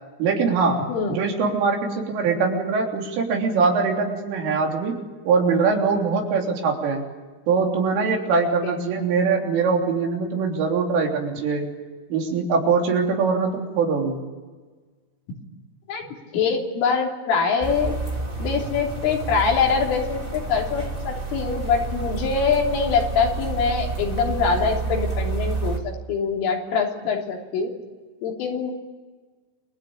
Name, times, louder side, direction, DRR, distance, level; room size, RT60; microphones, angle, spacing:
voice 1, 0.2-5.0 5.3-7.0 7.5-11.7 12.1-14.2, right 4 dB, 75° right, 1 dB, 6.0 m, -22 dB
voice 2, 16.3-17.9 18.4-27.7 28.2-28.7, left 5 dB, 75° left, 0 dB, 5.8 m, -24 dB
sound 1, 17.6-25.8, right 3 dB, 25° right, 1.2 m, -29 dB
29.0 x 21.5 x 8.8 m, 1.4 s
omnidirectional pair, 5.9 m